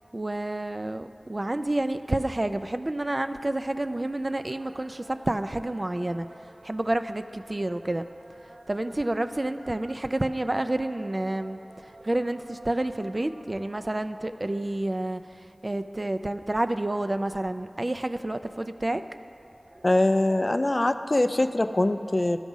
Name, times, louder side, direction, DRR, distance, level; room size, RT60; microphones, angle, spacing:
voice 1, 0.0-19.0 19.7-19.9, right 1 dB, 40° right, 0.3 m, -29 dB
voice 2, 19.8-22.4, left 1 dB, 40° left, 0.3 m, -23 dB
12.5 x 4.9 x 5.4 m
wide cardioid pair, 50°, 0 cm